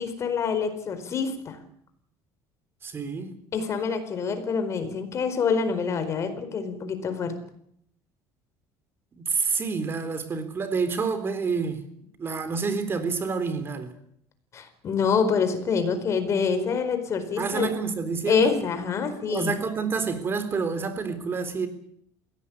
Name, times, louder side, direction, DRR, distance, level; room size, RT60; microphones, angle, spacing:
voice 1, 0.0-1.6 3.5-7.4 14.5-17.7 18.3-19.5, left 5 dB, 40° left, 4.6 m, -26 dB
voice 2, 2.8-3.3 9.1-11.8 12.2-13.9 17.4-18.6 19.3-21.7, right 5 dB, 30° right, 3.8 m, -28 dB
21.5 x 17.5 x 8.7 m
cardioid pair, 115°, 7 cm